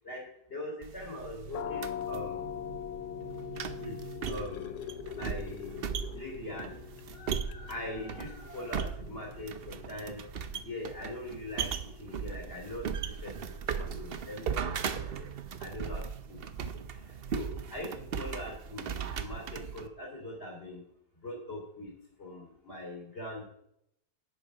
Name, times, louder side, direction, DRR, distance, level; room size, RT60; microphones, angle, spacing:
voice 1, 0.0-2.4 3.8-4.0 4.3-4.7 5.1-6.7 7.1-10.2 10.6-11.7 12.0-15.3 15.6-20.8 21.2-21.9 22.2-23.5, left 1 dB, 40° left, -1 dB, 3.2 m, -42 dB
sound 1, 0.8-19.9, right 7 dB, 50° right, 0.7 m, -38 dB
sound 2, 1.5-13.0, left 10 dB, 60° left, 0.9 m, -44 dB
sound 3, 3.9-6.6 7.0-7.1 7.5-7.7 8.8-8.9, left 7 dB, 85° left, 1.2 m, -45 dB
10.5 x 8.1 x 4.9 m, 0.76 s
omnidirectional pair, 1.7 m